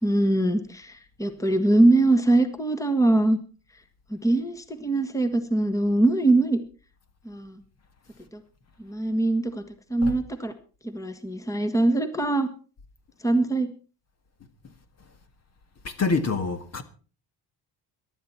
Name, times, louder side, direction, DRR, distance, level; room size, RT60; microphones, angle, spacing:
voice 1, 0.0-3.4 4.1-6.6 7.2-7.6 8.3-8.4 8.8-9.6 9.9-10.5 10.8-12.5 13.2-13.7, right 2 dB, 10° left, 1.5 m, -22 dB
voice 2, 16.0-16.8, left 4 dB, 40° left, 1.6 m, -25 dB
18.0 x 12.5 x 4.4 m
cardioid pair, 140°, 42 cm